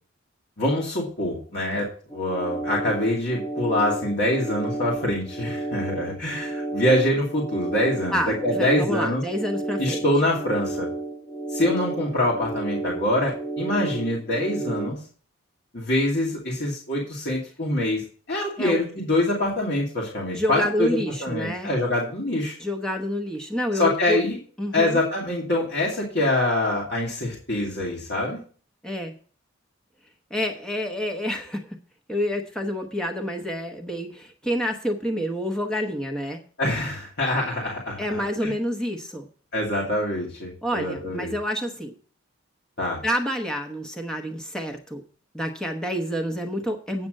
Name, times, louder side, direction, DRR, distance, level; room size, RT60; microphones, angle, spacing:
voice 1, 0.6-1.9 2.1-9.2 9.8-10.9 11.5-15.0 15.7-18.0 18.3-22.6 23.7-24.4 24.7-28.4 36.6-38.5 39.5-41.3 42.8-43.0, left 1 dB, 55° left, -3 dB, 2.5 m, -25 dB
sound 1, 2.1-14.9, right 2 dB, 20° left, 2.1 m, -32 dB
voice 2, 8.1-10.0 18.6-18.8 20.3-21.7 22.6-24.2 24.6-25.0 28.8-29.1 30.3-31.7 32.1-36.4 38.0-39.3 40.6-41.9 43.0-45.0 45.3-47.1, equal, 5° left, 2 dB, 1.0 m, -28 dB
8.8 x 6.0 x 6.4 m, 0.43 s
head